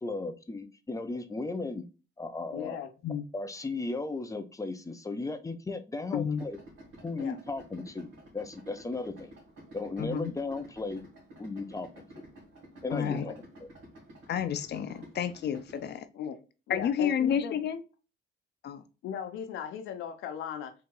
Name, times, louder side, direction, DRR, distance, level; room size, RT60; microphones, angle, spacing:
voice 1, 0.0-1.9 2.2-2.8 3.3-6.6 7.0-8.1 8.3-9.3 9.7-11.0 11.4-12.1 12.8-13.4, left 3 dB, 15° left, 0.6 m, -35 dB
voice 2, 2.5-2.9 7.2-7.4 12.9-13.4 16.1-16.3 16.7-17.5 19.0-20.7, left 8 dB, 90° left, 0.8 m, -38 dB
Idling, 6.4-15.9, right 1 dB, 80° right, 1.9 m, -51 dB
voice 3, 10.0-10.3 12.9-13.3 14.3-16.1 16.7-17.8 18.6-18.8, left 8 dB, 55° left, 0.6 m, -30 dB
4.0 x 2.8 x 3.7 m
cardioid pair, 90°, 20 cm